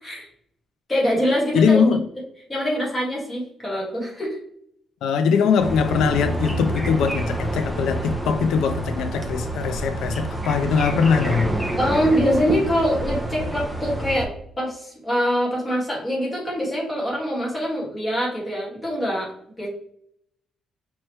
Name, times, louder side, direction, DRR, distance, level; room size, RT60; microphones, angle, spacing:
voice 1, 0.9-2.0 2.5-4.4 11.8-14.3 14.6-19.3 19.6-19.7, equal, 15° left, 1.7 m, -24 dB
voice 2, 1.5-2.0 5.0-11.5, left 6 dB, 85° left, 0.4 m, -21 dB
sound 1, 5.6-14.3, right 1 dB, 5° right, 0.6 m, -28 dB
5.4 x 3.0 x 3.2 m
cardioid pair, 160°, 0 cm